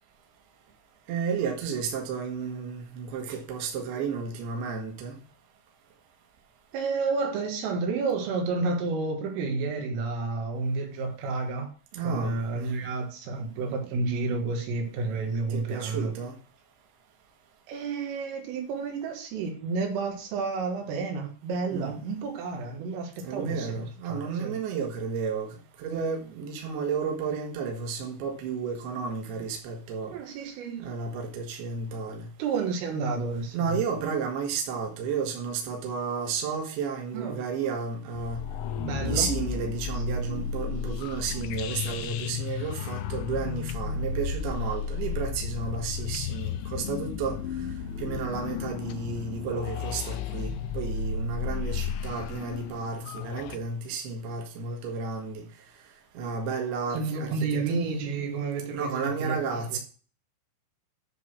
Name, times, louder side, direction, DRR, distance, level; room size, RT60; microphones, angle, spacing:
voice 1, 1.1-5.2 11.9-12.7 15.5-16.4 21.7-21.9 23.2-30.2 30.8-32.3 33.5-38.4 39.0-47.4 48.0-55.4 56.1-57.8 58.7-59.8, right 5 dB, 60° right, 3.2 m, -32 dB
voice 2, 6.7-11.7 12.0-16.1 17.7-23.7 24.1-24.6 30.1-30.9 32.4-33.8 37.1-37.4 38.8-39.3 39.9-40.0 56.9-59.8, right 4 dB, 75° right, 4.2 m, -30 dB
sound 1, 38.2-53.6, left 6 dB, 85° left, 2.9 m, -33 dB
10.5 x 4.0 x 6.3 m
omnidirectional pair, 5.9 m